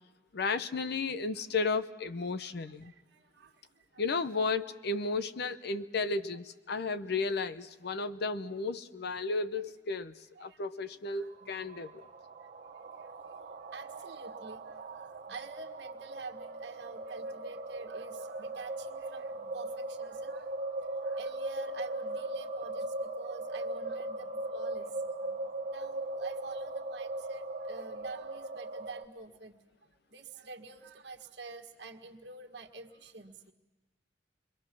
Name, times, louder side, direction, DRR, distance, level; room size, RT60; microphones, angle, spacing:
voice 1, 0.3-2.9 4.0-10.1 10.4-12.1, left 4 dB, 60° left, 11 dB, 0.7 m, -33 dB
voice 2, 2.4-4.0 10.4-10.6 11.1-11.5 12.8-20.7 21.0-29.6 29.9-33.5, right 3 dB, 65° right, 2 dB, 1.7 m, -48 dB
sound 1, 11.2-29.0, right 2 dB, 45° right, 1.0 m, -39 dB
28.0 x 23.0 x 6.1 m, 1.1 s
head